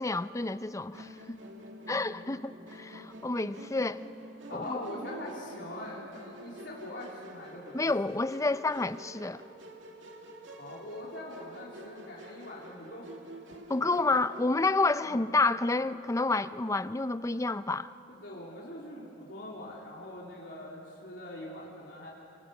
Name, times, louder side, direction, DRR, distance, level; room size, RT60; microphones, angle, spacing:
voice 1, 0.0-1.4 1.9-4.0 4.5-4.8 7.7-9.4 13.7-17.9, left 3 dB, 15° left, 14 dB, 0.5 m, -29 dB
Musical instrument, 0.9-14.7, right 1 dB, 90° right, 2.4 m, -48 dB
voice 2, 4.5-7.9 10.6-13.1 15.0-15.2 18.1-22.1, left 1 dB, 75° left, -4 dB, 3.4 m, -42 dB
28.0 x 24.0 x 7.1 m, 2.9 s
head